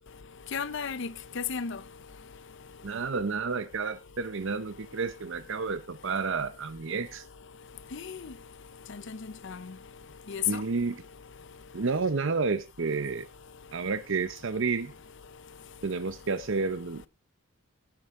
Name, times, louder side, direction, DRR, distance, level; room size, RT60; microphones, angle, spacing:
voice 1, 0.5-1.8 7.9-8.3 8.9-9.2 9.4-9.7 10.3-10.6, left 7 dB, 60° left, 0.7 m, -33 dB
voice 2, 2.8-7.2 10.5-11.0 11.7-13.3 13.7-14.9 15.8-17.1, right 4 dB, 60° right, 0.7 m, -30 dB
15.5 x 9.9 x 3.7 m
head